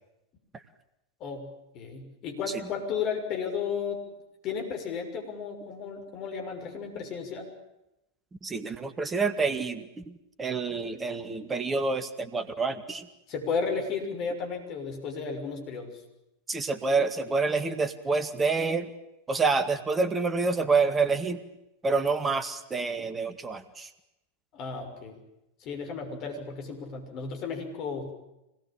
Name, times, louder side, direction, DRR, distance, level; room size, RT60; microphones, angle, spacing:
voice 1, 1.7-4.0 4.4-7.5 13.3-16.0 24.5-25.2 25.6-28.1, left 5 dB, 40° left, 3 dB, 6.5 m, -33 dB
voice 2, 8.4-13.1 16.5-18.9 19.3-21.4 21.8-23.9, right 4 dB, 15° right, 11 dB, 2.0 m, -28 dB
25.5 x 20.5 x 8.9 m, 0.90 s
figure-of-eight pair, 90°, 0 cm